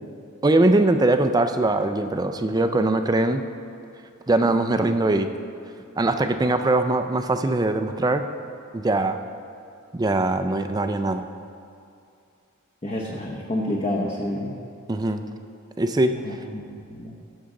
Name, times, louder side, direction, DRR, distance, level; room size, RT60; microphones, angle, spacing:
voice 1, 0.4-3.4 4.3-5.3 6.0-8.2 8.7-9.2 9.9-11.2 14.9-15.2 15.8-16.2, right 2 dB, 15° right, 8 dB, 0.4 m, -21 dB
voice 2, 12.8-14.6 16.1-16.6 16.9-17.1, left 1 dB, 30° left, -3 dB, 0.8 m, -28 dB
15.5 x 7.1 x 3.8 m, 2.6 s
head